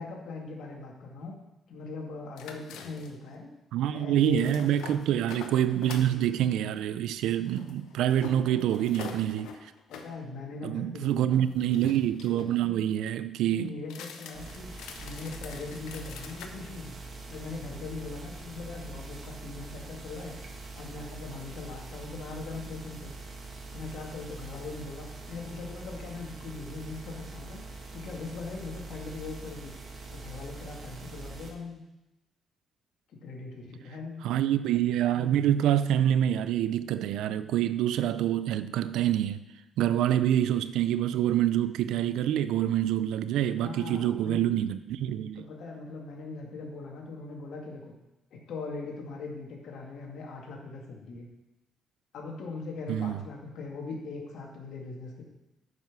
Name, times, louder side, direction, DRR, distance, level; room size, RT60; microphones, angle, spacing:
voice 1, 0.0-1.3 1.7-3.5 3.9-4.6 8.5-8.7 9.9-11.4 12.6-12.9 13.5-14.7 15.0-16.9 17.3-20.4 20.7-23.1 23.7-27.6 27.9-29.7 30.1-31.8 33.1-34.2 40.3-40.4 43.6-44.6 45.4-47.9 48.3-51.3 52.1-55.2, left 3 dB, 75° left, 2.1 m, -40 dB
sound 1, 2.4-3.3 4.2-6.2 7.5-10.1 11.3-12.6 13.8-16.5, left 7 dB, 90° left, 0.9 m, -45 dB
voice 2, 3.7-9.7 10.6-13.7 34.2-39.4 39.8-45.4 52.9-53.2, right 11 dB, 85° right, 0.4 m, -26 dB
sound 2, 14.3-31.5, right 3 dB, 50° right, 1.8 m, -43 dB
9.2 x 5.6 x 6.1 m
cardioid pair, 90°, 0 cm